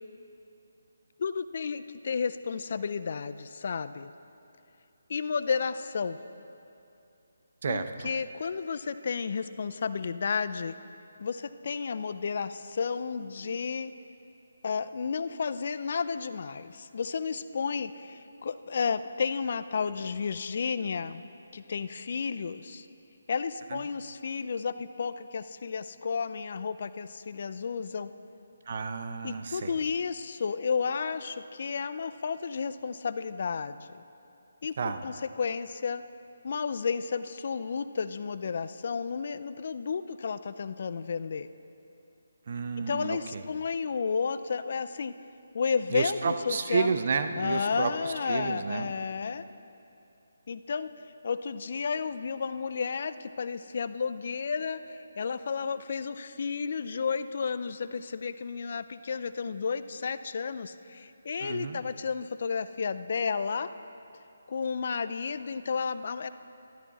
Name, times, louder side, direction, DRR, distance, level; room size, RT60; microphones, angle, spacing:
voice 1, 1.2-4.1 5.1-6.2 7.7-10.8 11.2-13.9 14.6-21.2 21.5-22.9 23.3-28.1 29.2-34.0 34.6-36.0 36.4-41.5 42.9-45.1 45.5-46.9 47.4-49.4 50.5-50.9 51.2-63.7 64.5-66.3, left 5 dB, 50° left, 13 dB, 0.4 m, -32 dB
voice 2, 7.6-8.1 23.7-23.8 28.7-29.7 34.8-35.0 42.5-43.4 45.9-48.9 61.4-61.8, right 5 dB, 50° right, 8 dB, 0.7 m, -31 dB
13.5 x 12.5 x 4.1 m, 2.7 s
figure-of-eight pair, 155°, 0 cm